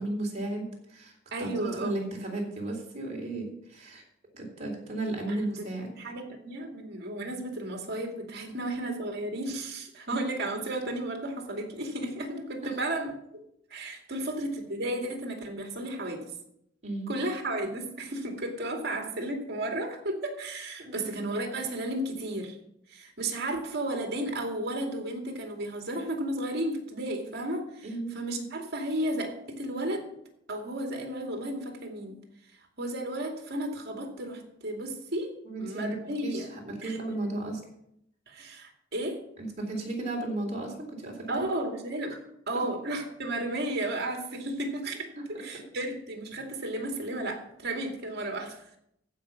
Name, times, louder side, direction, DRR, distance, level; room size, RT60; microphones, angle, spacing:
voice 1, 0.0-4.0 4.3-5.9 10.1-10.2 16.8-17.1 20.8-21.0 27.8-28.2 35.4-37.6 39.4-41.6, right 2 dB, 35° right, 0 dB, 3.7 m, -34 dB
voice 2, 1.3-1.9 5.3-5.6 5.9-13.4 13.7-16.3 17.1-22.6 22.9-27.9 28.1-30.1 30.5-32.2 32.8-36.5 36.8-37.0 38.3-39.2 41.3-42.2 42.5-48.7, right 1 dB, 55° right, 3 dB, 2.5 m, -33 dB
15.0 x 5.8 x 7.3 m, 0.75 s
head